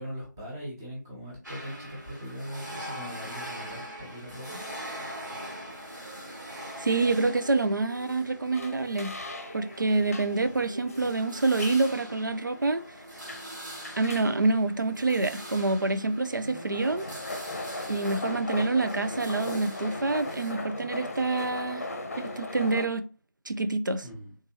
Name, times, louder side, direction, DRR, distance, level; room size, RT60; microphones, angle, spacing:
voice 1, 0.0-4.6 24.0-24.4, equal, 10° right, 0.8 m, -40 dB
sound 1, 1.4-20.5, equal, 70° right, 1.7 m, -42 dB
voice 2, 6.8-9.1 9.5-12.8 14.0-17.0 17.9-21.9 22.2-23.1 23.5-24.0, right 3 dB, 90° right, 0.5 m, -27 dB
sound 2, 8.5-22.9, left 2 dB, 50° left, 0.7 m, -39 dB
3.6 x 3.0 x 2.8 m
figure-of-eight pair, 170°, 10 cm